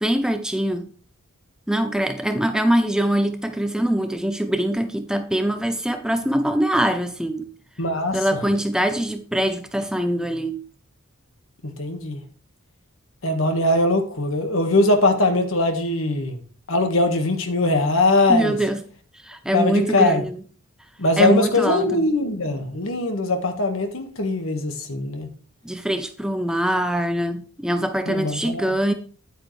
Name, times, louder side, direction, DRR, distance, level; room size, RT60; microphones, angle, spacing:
voice 1, 0.0-0.9 1.7-7.5 8.1-10.6 18.3-18.8 19.2-20.4 21.2-22.0 25.6-28.9, right 1 dB, 5° right, 0.5 m, -23 dB
voice 2, 7.8-8.4 11.6-12.2 13.2-16.4 16.7-18.6 19.5-20.2 21.0-25.3 28.1-28.8, left 2 dB, 70° left, 1.6 m, -21 dB
10.0 x 8.6 x 3.2 m
head